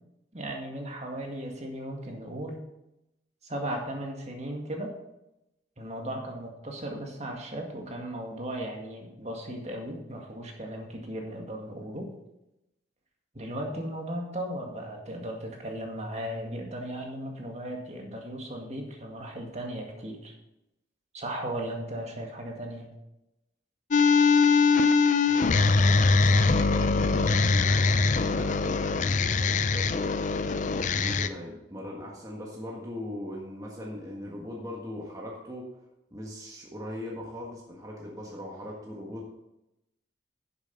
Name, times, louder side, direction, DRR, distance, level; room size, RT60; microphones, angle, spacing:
voice 1, 0.3-2.6 3.4-4.9 5.8-12.1 13.3-20.3 21.1-22.9, right 1 dB, 40° right, 2 dB, 2.0 m, -36 dB
sound 1, 23.9-31.3, left 4 dB, 45° left, 0.5 m, -22 dB
voice 2, 25.2-30.2 30.9-35.6 36.1-39.2, left 1 dB, 20° right, -3 dB, 1.6 m, -40 dB
10.5 x 7.3 x 5.3 m, 0.89 s
head